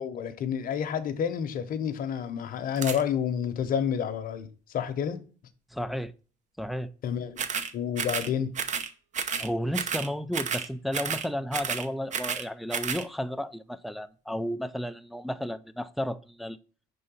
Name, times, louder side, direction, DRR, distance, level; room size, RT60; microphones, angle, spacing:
voice 1, 0.0-5.2 7.0-7.4 7.7-8.5, left 8 dB, 55° left, 0.9 m, -29 dB
sound 1, 2.8-3.0 7.4-7.7 8.0-8.3 8.6-8.9 9.1-9.5 9.7-10.1 10.3-10.7 10.9-11.3 11.5-12.5 12.7-13.0, right 6 dB, 45° right, 0.7 m, -31 dB
voice 2, 5.7-6.1 6.6-6.9 9.4-16.6, equal, ahead, 0.4 m, -33 dB
5.4 x 3.9 x 5.4 m
cardioid pair, 110°, 17 cm